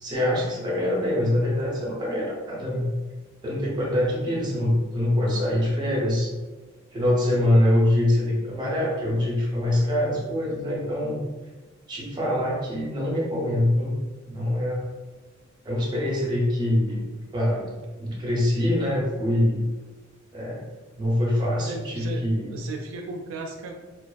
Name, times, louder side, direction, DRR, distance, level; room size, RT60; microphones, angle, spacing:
voice 1, 0.0-2.9 3.4-6.3 6.9-11.2 11.9-13.9 14.3-14.7 15.6-17.0 17.3-19.6 20.3-20.6 21.0-22.6, left 1 dB, 20° right, -5 dB, 0.6 m, -24 dB
voice 2, 21.7-23.7, right 3 dB, 80° right, 1 dB, 0.3 m, -36 dB
2.3 x 2.2 x 2.3 m, 1.2 s
head